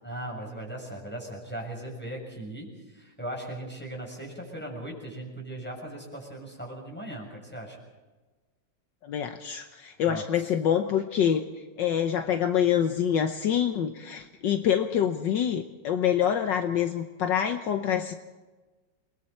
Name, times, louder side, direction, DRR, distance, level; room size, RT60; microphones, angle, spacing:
voice 1, 0.0-7.8 10.0-10.5, right 1 dB, 5° left, 0 dB, 6.6 m, -38 dB
voice 2, 9.0-11.4 11.8-18.1, left 9 dB, 70° left, 7 dB, 1.5 m, -26 dB
29.0 x 21.5 x 4.3 m, 1.3 s
omnidirectional pair, 2.1 m